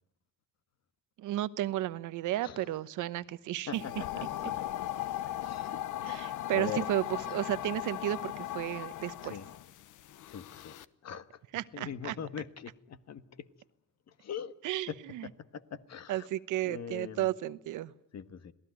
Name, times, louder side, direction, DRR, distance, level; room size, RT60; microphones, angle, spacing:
voice 1, 1.2-3.8 6.0-9.4 11.5-12.1 14.6-15.3 16.1-17.9, right 14 dB, 90° right, 1.1 m, -33 dB
sound 1, 3.7-10.9, left 13 dB, 80° left, 1.1 m, -38 dB
voice 2, 3.7-6.9 9.2-9.5 10.3-10.8 11.0-11.4 11.7-13.5 14.1-14.5 14.9-16.3 16.6-17.3 18.1-18.5, left 8 dB, 60° left, 1.7 m, -42 dB
27.5 x 18.5 x 9.2 m
cardioid pair, 90°, 30 cm